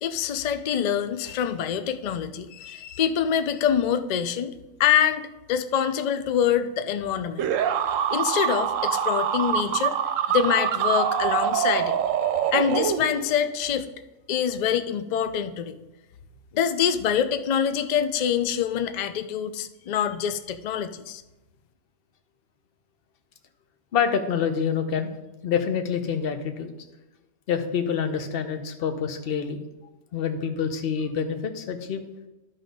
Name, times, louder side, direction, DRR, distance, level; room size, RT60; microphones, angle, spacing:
voice 1, 0.0-4.5 4.8-7.5 8.1-10.0 10.3-12.0 12.5-13.9 14.3-15.8 16.5-21.2, left 8 dB, 80° left, 10 dB, 0.3 m, -25 dB
sound 1, 7.4-13.4, right 9 dB, 80° right, 1.0 m, -25 dB
voice 2, 23.9-25.1 25.4-26.7 27.5-29.6 30.1-32.0, left 7 dB, 50° left, 7 dB, 0.9 m, -26 dB
11.0 x 4.0 x 5.2 m, 1.0 s
omnidirectional pair, 1.3 m